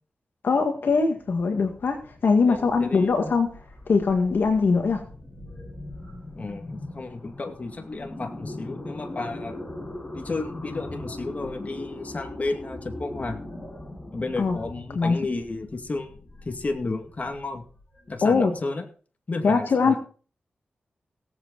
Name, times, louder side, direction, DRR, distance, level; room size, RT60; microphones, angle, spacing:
voice 1, 0.4-3.5 3.9-5.0 14.4-14.6 14.9-15.2 18.2-18.5 19.4-20.0, left 4 dB, 75° left, 5 dB, 1.9 m, -22 dB
sound 1, 0.7-18.5, left 1 dB, 25° left, 7.0 m, -40 dB
voice 2, 2.5-3.3 6.4-9.7 10.1-13.4 14.1-17.6 18.1-18.9 19.3-20.0, left 3 dB, 45° left, 5 dB, 2.2 m, -32 dB
17.5 x 8.2 x 4.0 m, 0.39 s
cardioid pair, 60°, 4 cm